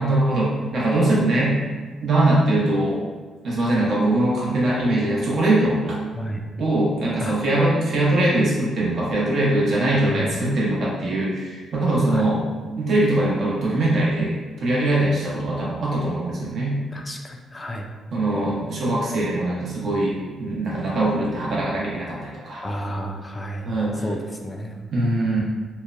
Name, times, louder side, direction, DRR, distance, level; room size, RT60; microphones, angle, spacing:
voice 1, 0.0-1.5 2.0-3.0 3.4-6.0 6.6-12.4 12.8-16.8 18.1-22.6 23.6-24.0 24.9-25.4, right 1 dB, 60° right, -5 dB, 0.8 m, -22 dB
voice 2, 9.9-10.4 12.1-12.3 16.9-17.9 22.6-23.8 24.0-24.8, equal, 20° left, 2 dB, 0.4 m, -31 dB
2.8 x 2.1 x 2.4 m, 1.4 s
cardioid pair, 90°, 0 cm